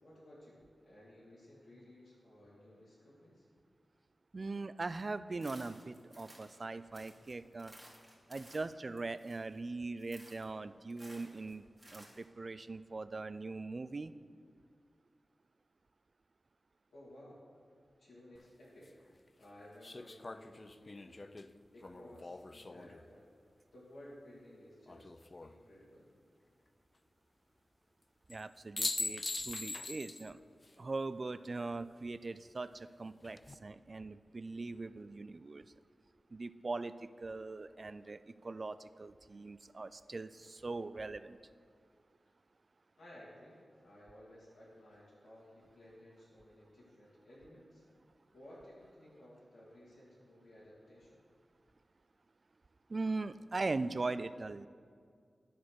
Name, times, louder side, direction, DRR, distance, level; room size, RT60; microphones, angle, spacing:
voice 1, 0.0-3.4 16.9-17.4 18.0-18.9 19.4-21.3 21.7-23.3 23.7-25.1 25.4-26.1 43.0-43.6 43.8-47.8 48.3-51.2, left 1 dB, 80° left, -8 dB, 2.1 m, -56 dB
voice 2, 4.3-7.7 8.3-11.6 11.9-14.1 28.3-30.4 30.8-35.7 36.3-41.4 52.9-54.7, right 3 dB, 50° right, 14 dB, 0.3 m, -41 dB
sound 1, 5.4-6.6 6.9-9.6 10.0-10.5 10.9-12.2, right 1 dB, 15° right, 2.3 m, -57 dB
sound 2, 18.3-18.4 19.8-23.0 24.9-25.5 28.3-28.4 28.8-30.3 30.6-30.7 33.0-33.5, left 2 dB, 40° left, 0.3 m, -41 dB
10.0 x 4.2 x 6.2 m, 2.2 s
cardioid pair, 50°, 0 cm